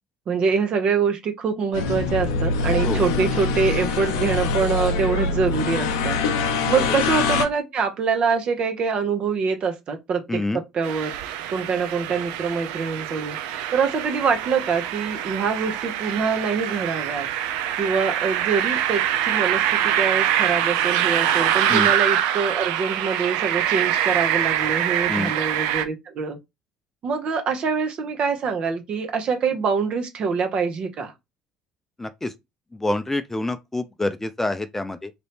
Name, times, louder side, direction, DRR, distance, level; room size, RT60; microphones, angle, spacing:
voice 1, 0.3-6.2 6.7-10.4 10.7-11.1 11.5-13.4 13.7-17.3 17.8-26.4 27.0-31.1, right 5 dB, 50° right, 0.8 m, -25 dB
sound 1, 1.7-7.5, left 4 dB, 80° left, 0.5 m, -24 dB
voice 2, 10.3-10.6 21.7-21.9 25.1-25.3 32.0-32.3 32.7-35.1, left 2 dB, 15° left, 0.4 m, -27 dB
sound 2, 10.8-25.8, right 11 dB, 75° right, 0.4 m, -24 dB
2.9 x 2.6 x 3.4 m
hypercardioid pair, 65°, 2 cm